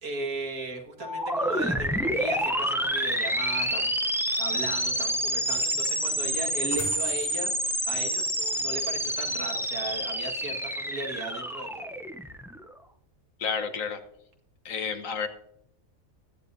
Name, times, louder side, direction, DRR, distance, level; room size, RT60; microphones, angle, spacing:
voice 1, 0.0-3.9 4.4-7.6 7.8-11.9, right 2 dB, 80° right, 1 dB, 2.4 m, -36 dB
sound 1, 1.0-12.7, equal, 5° right, 0.4 m, -28 dB
sound 2, 5.9-10.2, right 1 dB, 40° left, 5.0 m, -48 dB
voice 2, 13.4-14.0 14.6-15.3, left 6 dB, 65° left, 8 dB, 1.5 m, -30 dB
22.5 x 9.8 x 2.7 m, 0.76 s
omnidirectional pair, 1.5 m